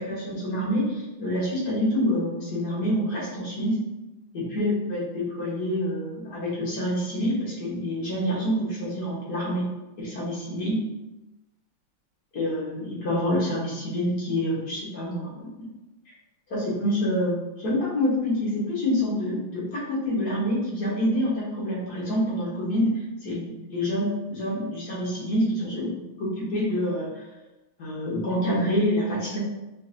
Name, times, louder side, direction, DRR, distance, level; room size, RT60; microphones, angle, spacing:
voice 1, 0.0-3.8 4.3-9.7 10.0-10.8 12.3-15.5 16.5-27.1 27.8-29.4, equal, 55° left, -6 dB, 1.6 m, -27 dB
5.3 x 2.6 x 2.5 m, 1.0 s
omnidirectional pair, 2.3 m